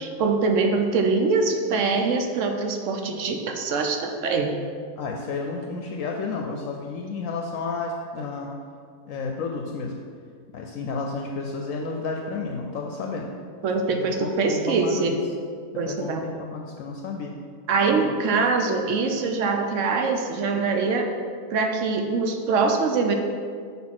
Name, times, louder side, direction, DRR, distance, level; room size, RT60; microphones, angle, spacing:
voice 1, 0.0-4.5 13.6-15.1 15.8-16.3 17.7-21.1 21.5-23.1, right 4 dB, 65° right, 4 dB, 0.9 m, -23 dB
voice 2, 5.0-8.5 9.1-10.0 10.5-13.3 13.9-15.2 15.9-17.3, left 4 dB, 70° left, 1 dB, 0.9 m, -31 dB
6.2 x 3.7 x 5.9 m, 2.1 s
omnidirectional pair, 1.5 m